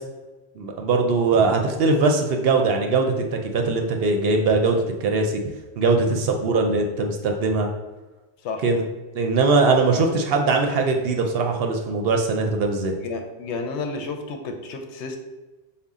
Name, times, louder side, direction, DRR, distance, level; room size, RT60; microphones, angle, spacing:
voice 1, 0.6-5.4 5.8-7.7 8.6-8.8 9.1-12.9, right 3 dB, 65° right, 3 dB, 0.7 m, -21 dB
voice 2, 13.0-15.2, left 4 dB, 80° left, 5 dB, 0.9 m, -31 dB
5.3 x 2.2 x 3.5 m, 1.2 s
omnidirectional pair, 1.2 m